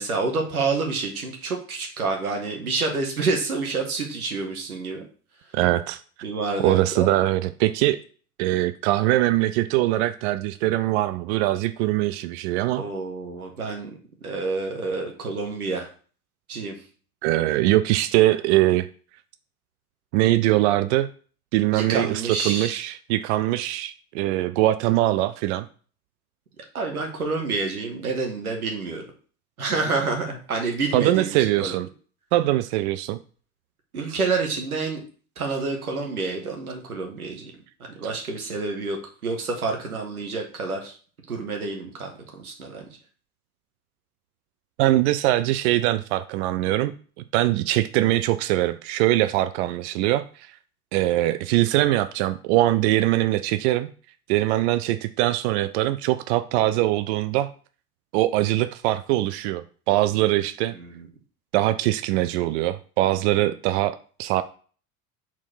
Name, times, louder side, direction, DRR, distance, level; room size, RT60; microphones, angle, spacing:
voice 1, 0.0-5.1 6.2-7.1 12.8-14.0 14.2-15.9 16.5-16.7 21.7-22.8 26.7-29.0 29.6-31.8 33.9-35.0 35.4-37.5 37.9-39.0 39.2-41.0 41.3-42.8 60.7-61.1, right 4 dB, 80° right, 2 dB, 1.4 m, -28 dB
voice 2, 5.5-6.0 6.6-8.0 8.4-12.8 17.2-18.9 20.1-21.1 21.5-25.7 30.9-31.9 32.3-33.2 44.8-46.9 47.3-50.2 50.9-53.9 54.3-57.5 58.1-60.7 61.5-64.4, right 15 dB, 50° right, 12 dB, 0.5 m, -22 dB
4.4 x 4.3 x 5.7 m, 0.41 s
figure-of-eight pair, 70°, 44 cm